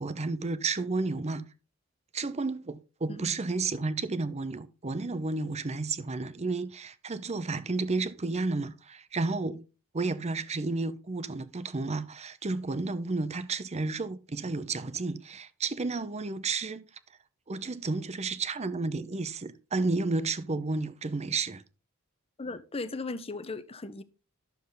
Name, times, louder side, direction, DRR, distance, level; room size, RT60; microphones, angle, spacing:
voice 1, 0.0-1.5 2.1-9.7 9.9-16.9 17.5-21.6, right 3 dB, 30° right, 0.7 m, -32 dB
voice 2, 22.4-24.0, left 3 dB, 25° left, 0.8 m, -37 dB
11.5 x 6.9 x 3.9 m
head